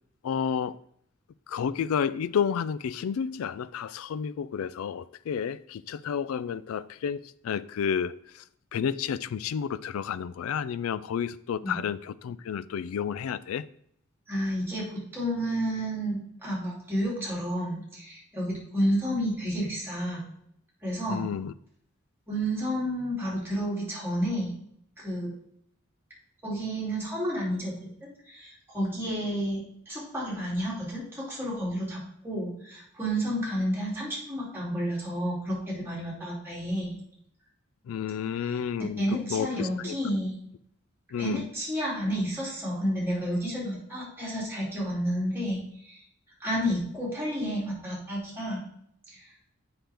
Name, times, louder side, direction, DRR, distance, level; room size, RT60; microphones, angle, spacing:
voice 1, 0.2-0.8 1.5-8.4 8.7-13.7 21.1-21.5 37.8-39.9 41.1-41.5, left 7 dB, 75° left, 0.3 m, -31 dB
voice 2, 14.3-20.3 20.8-21.3 22.3-24.6 25.0-25.3 26.4-27.7 28.3-29.6 29.9-37.0 39.0-40.3 41.2-46.0 46.4-48.6 49.1-49.2, equal, 10° right, 2.7 m, -30 dB
7.6 x 5.8 x 3.4 m
head